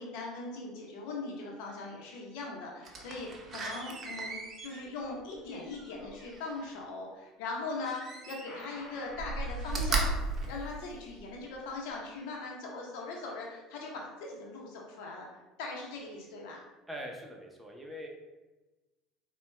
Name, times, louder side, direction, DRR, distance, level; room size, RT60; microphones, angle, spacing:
voice 1, 0.0-10.1 10.5-15.3 15.6-16.6, left 3 dB, 70° left, -1 dB, 0.9 m, -40 dB
Slam, 2.8-6.7 7.8-8.7 9.1-11.4 11.9-12.0, right 3 dB, 40° right, 0.7 m, -36 dB
sound 1, 8.5-10.9, left 1 dB, 45° left, 1.4 m, -51 dB
voice 2, 16.9-18.1, equal, 10° right, 0 dB, 0.8 m, -42 dB
4.3 x 2.3 x 3.2 m, 1.1 s
hypercardioid pair, 70°, 0 cm